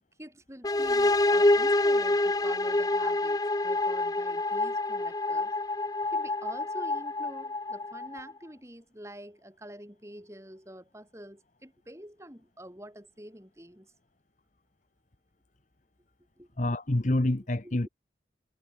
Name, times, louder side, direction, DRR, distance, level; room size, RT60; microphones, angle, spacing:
voice 1, 0.2-5.5 6.1-13.9 16.4-16.5 17.6-17.9, right 1 dB, 15° right, 7.5 m, -47 dB
sound 1, 0.6-8.3, left 2 dB, 20° left, 0.7 m, -27 dB
voice 2, 16.6-17.9, left 1 dB, 40° left, 1.1 m, -27 dB
head